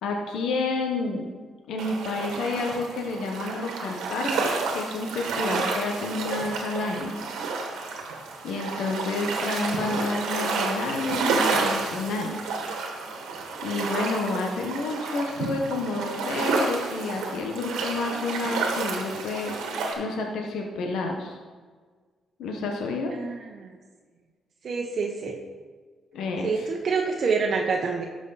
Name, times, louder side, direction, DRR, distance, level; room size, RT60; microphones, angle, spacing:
voice 1, 0.0-1.3 1.7-7.1 8.4-12.5 13.6-19.6 20.0-21.4 22.4-23.1 26.1-26.5, left 3 dB, 80° left, 1 dB, 1.2 m, -30 dB
sound 1, 1.8-19.9, right 4 dB, 90° right, 1.6 m, -30 dB
voice 2, 23.1-23.8 24.6-25.4 26.4-28.0, right 5 dB, 50° right, 0 dB, 1.0 m, -27 dB
12.5 x 6.3 x 4.2 m, 1.5 s
cardioid pair, 90°, 0 cm